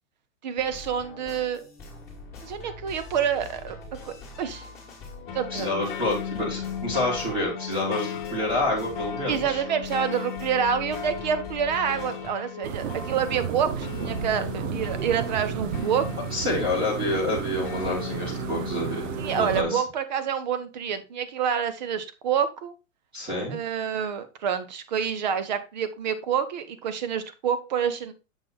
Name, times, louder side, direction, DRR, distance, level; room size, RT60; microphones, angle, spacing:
voice 1, 0.4-1.6 2.4-3.8 4.0-4.6 5.3-5.9 9.3-16.1 19.2-22.7 23.5-28.1, right 8 dB, 35° right, 12 dB, 0.7 m, -27 dB
sound 1, 0.6-12.3, left 3 dB, 5° left, 1.7 m, -44 dB
sound 2, 5.3-19.8, left 8 dB, 40° left, 0.4 m, -37 dB
voice 2, 5.5-9.6 16.3-19.1 19.3-19.8 23.1-23.6, left 1 dB, 15° right, -4 dB, 1.6 m, -28 dB
sound 3, 12.6-19.6, right 8 dB, 75° right, 0.8 m, -33 dB
7.0 x 3.7 x 4.1 m, 0.30 s
hypercardioid pair, 170°, 39 cm